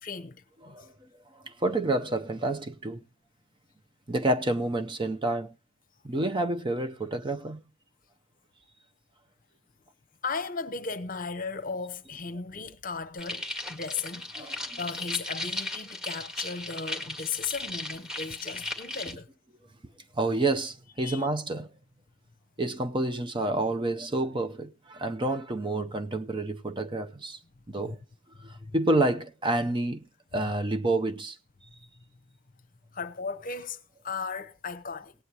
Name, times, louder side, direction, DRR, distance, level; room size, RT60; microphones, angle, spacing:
voice 1, 0.0-0.8 10.2-19.3 21.0-21.2 27.8-28.0 28.6-28.8 32.9-35.1, left 5 dB, 40° left, 0.9 m, -36 dB
voice 2, 1.4-3.0 4.1-5.5 6.0-7.6 14.4-14.8 20.1-21.7 22.6-27.4 27.7-28.0 28.4-30.0 30.3-31.4, right 2 dB, 25° right, 0.6 m, -29 dB
sound 1, 13.2-19.1, left 2 dB, 5° right, 1.8 m, -36 dB
18.0 x 9.6 x 2.9 m
head